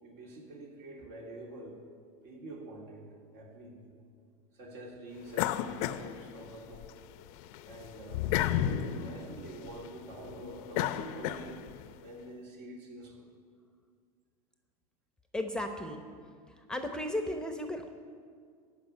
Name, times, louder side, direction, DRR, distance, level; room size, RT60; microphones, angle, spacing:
voice 1, 0.0-1.8 2.2-3.9 4.5-6.9 7.6-11.6 11.9-13.3, right 2 dB, 60° right, -1 dB, 3.0 m, -46 dB
sound 1, 5.3-6.9 7.3-11.9, left 11 dB, 65° left, 0.6 m, -33 dB
voice 2, 15.3-16.0 16.7-17.9, left 1 dB, 5° left, 5 dB, 0.8 m, -34 dB
14.5 x 5.1 x 9.3 m, 2.1 s
supercardioid pair, 115°, 20 cm